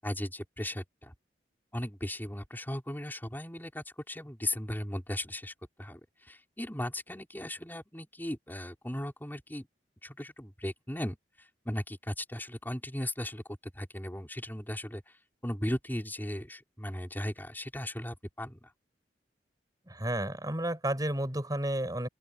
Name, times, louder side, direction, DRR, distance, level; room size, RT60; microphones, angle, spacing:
voice 1, 0.0-1.1 1.7-9.7 10.0-13.4 13.7-15.0 15.4-18.7, left 1 dB, 10° left, 6.0 m, -37 dB
voice 2, 19.9-22.1, right 1 dB, 20° right, 6.1 m, -31 dB
open air
head